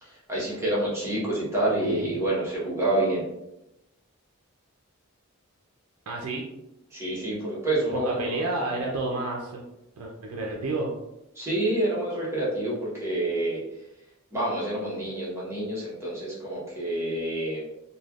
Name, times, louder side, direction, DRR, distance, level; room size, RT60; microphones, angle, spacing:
voice 1, 0.0-3.3 6.9-8.4 11.3-13.6 14.3-17.6, right 1 dB, 10° right, -7 dB, 1.0 m, -28 dB
voice 2, 6.1-6.4 7.9-9.6 10.0-10.9, right 2 dB, 90° right, -1 dB, 0.4 m, -30 dB
3.2 x 2.3 x 2.3 m, 0.89 s
head